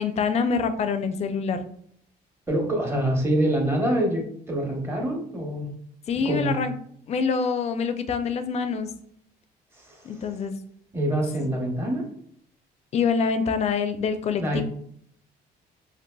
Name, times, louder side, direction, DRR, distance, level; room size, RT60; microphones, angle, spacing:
voice 1, 0.0-1.7 6.1-6.7 7.1-8.9 10.0-10.6 12.9-14.6, left 5 dB, 40° left, 9 dB, 0.4 m, -25 dB
voice 2, 2.5-5.7 6.2-6.6 9.8-10.1 10.9-12.0 14.4-14.6, right 1 dB, 15° right, 0 dB, 0.9 m, -25 dB
4.0 x 2.4 x 2.2 m, 0.65 s
cardioid pair, 110°, 17 cm